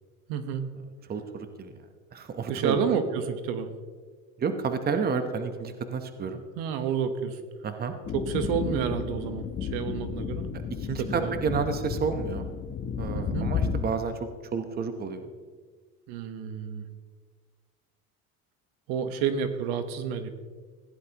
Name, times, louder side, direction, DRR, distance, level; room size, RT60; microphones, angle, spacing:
voice 1, 0.3-0.6 2.5-3.7 6.6-7.4 8.1-10.5 11.0-11.3 13.1-13.5 16.1-16.8 18.9-20.3, right 7 dB, 75° right, 9 dB, 1.2 m, -29 dB
voice 2, 1.1-1.7 2.1-2.8 4.4-6.4 7.6-7.9 10.8-12.5 13.0-15.3, right 5 dB, 25° right, 8 dB, 1.0 m, -30 dB
sound 1, 8.0-13.8, left 7 dB, 30° left, 0.9 m, -32 dB
16.0 x 10.5 x 3.0 m, 1.5 s
supercardioid pair, 115°, 36 cm